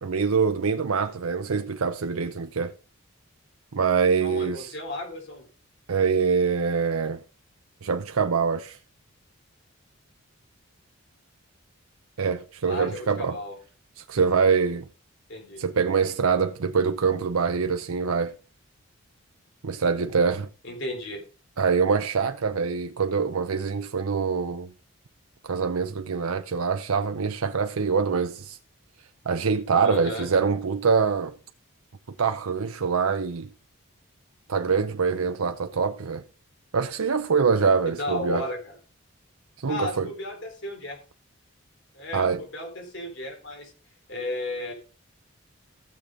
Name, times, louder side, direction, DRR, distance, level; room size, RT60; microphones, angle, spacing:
voice 1, 0.0-2.7 3.7-4.7 5.9-7.2 7.8-8.8 12.2-13.4 14.0-14.9 15.6-18.3 19.6-20.5 21.6-24.7 25.4-28.6 29.3-31.4 32.2-33.5 34.5-36.2 36.7-38.4 39.6-40.1 42.1-42.4, right 5 dB, 80° right, 0.7 m, -24 dB
voice 2, 4.2-5.4 12.7-13.6 15.3-15.6 20.6-21.2 29.8-30.3 38.0-38.8 39.7-41.0 41.9-43.7 44.1-44.7, left 1 dB, 55° left, 3.8 m, -34 dB
15.0 x 6.7 x 3.8 m
head